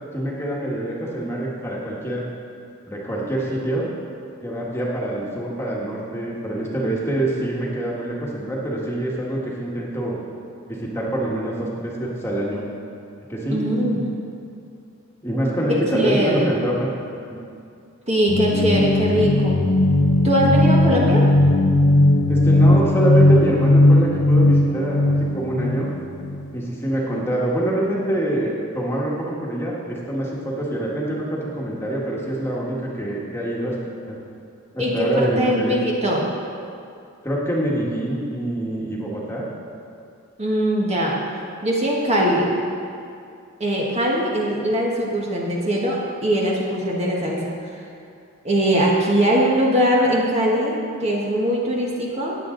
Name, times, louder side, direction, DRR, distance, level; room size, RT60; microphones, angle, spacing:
voice 1, 0.1-2.3 2.9-3.9 4.4-10.2 10.7-12.6 13.3-13.7 15.2-16.9 17.3-17.4 22.3-25.9 26.5-33.7 34.1-34.2 34.7-35.8 37.2-39.4, right 1 dB, 10° left, -4 dB, 1.6 m, -25 dB
voice 2, 13.5-14.0 15.7-16.6 18.1-19.6 20.2-21.3 34.8-36.3 40.4-41.2 41.6-42.5 43.6-47.6 48.4-52.4, equal, 30° right, -3 dB, 1.4 m, -21 dB
sound 1, 18.3-26.4, left 1 dB, 60° left, 0.8 m, -17 dB
15.5 x 9.0 x 3.9 m, 2.4 s
head